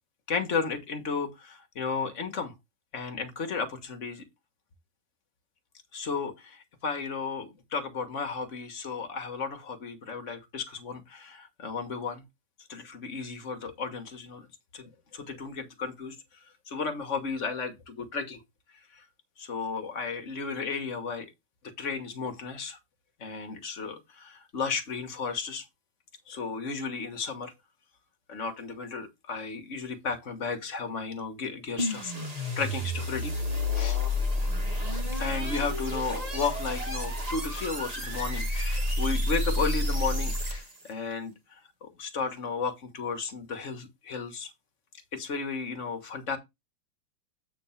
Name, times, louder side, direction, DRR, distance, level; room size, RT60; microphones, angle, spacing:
voice 1, 0.3-2.5 2.9-4.2 5.9-12.2 12.7-14.5 14.7-16.2 16.7-18.4 18.9-19.0 19.4-21.3 21.8-22.8 23.2-25.6 26.3-27.5 28.3-33.3 33.7-34.0 35.1-41.3 41.8-44.5 45.1-46.4, left 5 dB, 40° left, 1.6 m, -34 dB
sound 1, 31.8-40.9, left 1 dB, 25° right, 1.1 m, -30 dB
8.4 x 3.5 x 5.7 m
omnidirectional pair, 2.1 m